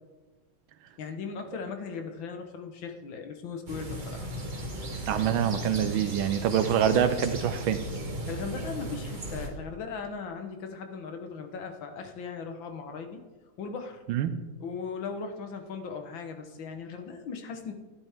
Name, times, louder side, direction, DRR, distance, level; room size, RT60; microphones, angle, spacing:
voice 1, 1.0-4.3 8.3-13.2 13.6-14.0 14.6-17.7, left 5 dB, 70° left, 6 dB, 1.8 m, -38 dB
sound 1, 3.7-9.5, right 1 dB, 30° right, 1.2 m, -36 dB
voice 2, 5.1-7.8 14.1-14.3, right 9 dB, 80° right, 11 dB, 1.4 m, -25 dB
12.0 x 11.0 x 3.5 m, 1.2 s
omnidirectional pair, 2.2 m